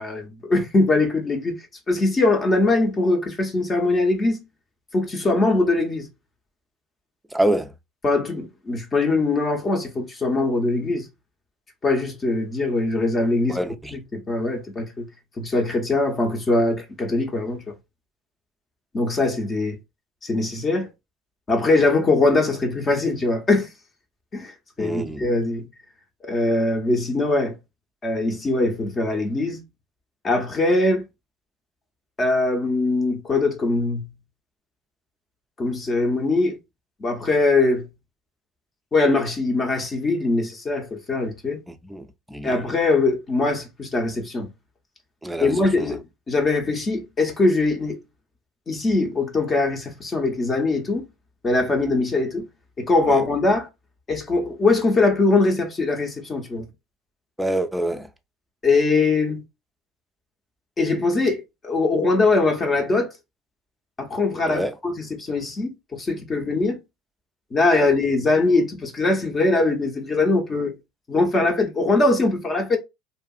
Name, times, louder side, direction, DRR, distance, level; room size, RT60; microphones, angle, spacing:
voice 1, 0.0-1.6 1.9-4.4 4.9-6.1 8.0-11.0 11.8-13.6 13.9-15.1 15.4-17.7 18.9-19.8 20.2-20.9 21.5-23.7 24.3-24.5 24.8-25.7 26.3-27.6 28.0-29.6 30.2-31.0 32.2-34.1 35.6-36.6 37.0-37.9 38.9-41.6 42.4-44.5 45.4-48.0 48.7-51.0 51.4-52.5 52.8-53.7 54.1-56.7 58.6-59.4 60.8-63.1 64.0-65.7 66.0-66.8 67.5-70.7 71.1-72.8, left 2 dB, 30° left, 0.8 m, -22 dB
voice 2, 7.3-7.7 13.5-13.9 24.8-25.2 41.7-42.6 45.2-45.9 53.1-53.2 57.4-58.1 64.5-64.7 67.7-67.9, right 1 dB, 5° right, 0.5 m, -26 dB
2.7 x 2.4 x 2.3 m
hypercardioid pair, 80°, 0 cm